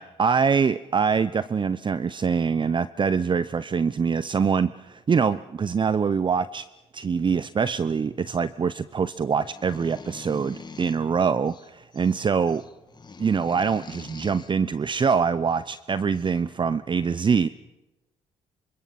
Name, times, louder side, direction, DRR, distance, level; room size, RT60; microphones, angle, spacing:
voice 1, 0.0-6.6 6.9-12.6 13.2-17.5, right 6 dB, 35° right, 15 dB, 0.8 m, -24 dB
sound 1, 9.4-11.1 11.5-12.1 12.5-14.5 15.7-15.8 16.1-16.4, left 4 dB, 35° left, 1.9 m, -44 dB
27.0 x 25.5 x 6.1 m, 1.0 s
supercardioid pair, 60°, 13 cm